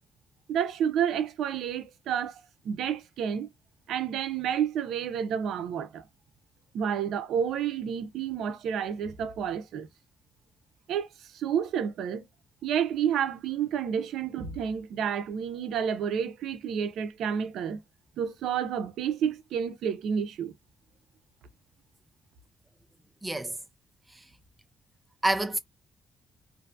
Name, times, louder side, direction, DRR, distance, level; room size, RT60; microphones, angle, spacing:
voice 1, 0.5-3.5 3.9-6.0 6.7-9.9 10.9-11.1 11.3-12.2 12.6-17.8 18.2-20.5, right 8 dB, 80° right, 0.5 m, -30 dB
voice 2, 23.2-23.6 24.1-24.2 25.2-25.6, right 2 dB, 15° right, 0.5 m, -28 dB
2.5 x 2.3 x 2.6 m
cardioid pair, 90°, 0 cm